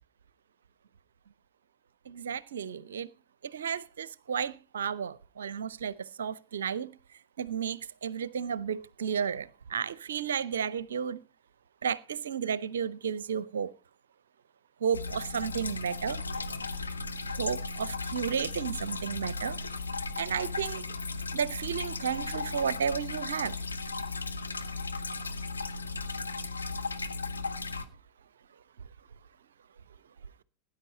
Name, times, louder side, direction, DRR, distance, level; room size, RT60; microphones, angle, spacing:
voice 1, 2.1-3.1 3.4-6.9 7.4-11.2 11.8-13.7 14.8-16.2 17.4-19.6 20.2-21.0 21.3-23.5, right 7 dB, 65° right, 0.6 m, -33 dB
sound 1, 14.9-27.8, left 3 dB, 80° left, 1.3 m, -36 dB
18.0 x 9.8 x 4.1 m
figure-of-eight pair, 90°, 0 cm